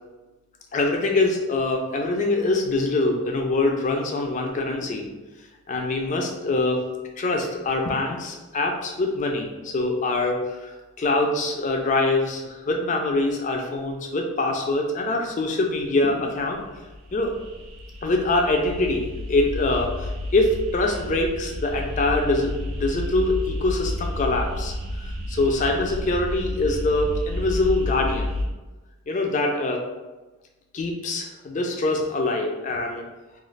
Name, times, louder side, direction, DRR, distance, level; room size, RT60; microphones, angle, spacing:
voice 1, 0.7-5.1 5.7-6.8 7.2-10.7 11.0-16.6 17.1-17.3 18.0-24.8 25.0-28.3 29.1-29.8 30.7-33.0, left 2 dB, 35° left, 2 dB, 0.3 m, -24 dB
sound 1, 16.6-28.5, left 1 dB, 80° right, 0.4 m, -31 dB
2.4 x 2.3 x 3.1 m, 1.2 s
head